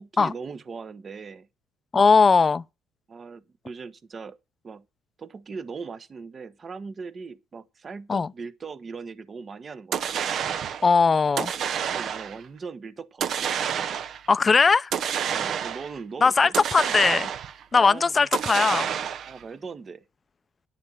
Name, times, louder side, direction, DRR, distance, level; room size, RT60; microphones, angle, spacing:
voice 1, 0.0-1.5 3.1-4.4 4.6-4.8 5.2-10.3 11.9-13.5 15.3-16.5 17.7-18.3 19.2-20.0, right 5 dB, 35° right, 1.2 m, -39 dB
voice 2, 1.9-2.6 8.1-8.3 10.8-11.5 14.3-14.9 16.2-17.3 17.7-18.9, left 4 dB, 30° left, 0.6 m, -19 dB
sound 1, 9.9-10.9 11.4-12.4 13.2-14.3 14.9-16.0 16.5-17.6 18.3-19.4, right 8 dB, 60° right, 0.9 m, -28 dB
11.0 x 6.7 x 7.9 m
cardioid pair, 95°, 0 cm